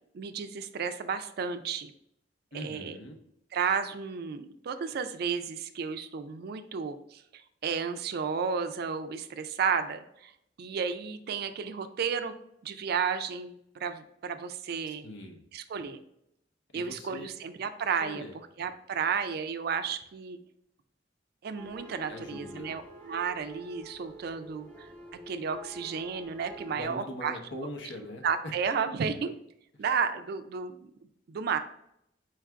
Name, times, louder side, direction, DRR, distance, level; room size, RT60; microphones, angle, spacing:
voice 1, 0.1-1.9 2.5-3.0 3.5-10.3 10.6-12.3 12.6-15.1 15.5-16.0 16.7-18.2 18.6-20.4 21.4-24.9 25.3-27.4 28.2-29.3 29.8-30.8 31.3-31.6, right 6 dB, 55° right, 10 dB, 0.3 m, -32 dB
voice 2, 2.5-3.2 14.9-15.4 16.7-17.3 18.0-18.4 22.1-22.8 26.7-28.5, left 1 dB, 70° left, 4 dB, 0.7 m, -42 dB
sound 1, 21.6-26.8, right 1 dB, 5° left, 0.7 m, -47 dB
4.5 x 2.4 x 4.4 m, 0.76 s
head